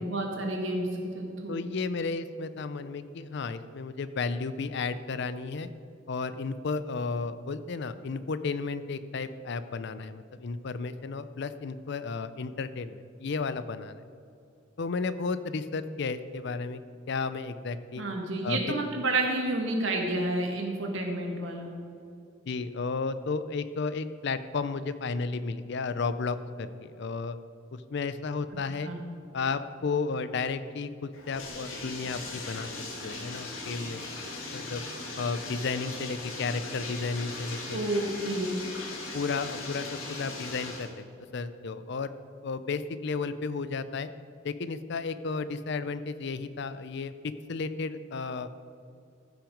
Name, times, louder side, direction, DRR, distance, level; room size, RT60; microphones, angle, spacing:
voice 1, 0.0-1.6 18.0-21.7 28.8-29.0 37.7-38.4, right 2 dB, 70° right, 1 dB, 1.8 m, -30 dB
voice 2, 1.5-5.7 6.1-14.0 14.8-16.8 17.1-18.0 18.4-18.6 22.5-27.4 27.7-28.9 29.3-32.7 33.0-34.0 34.5-34.8 35.2-37.8 39.1-41.0 41.3-42.1 42.4-44.1 44.4-47.1 47.5-48.5, left 4 dB, 60° left, 13 dB, 0.5 m, -33 dB
Bathtub (filling or washing), 31.1-40.9, left 2 dB, 85° left, 2.0 m, -39 dB
15.0 x 6.1 x 5.1 m, 2.6 s
head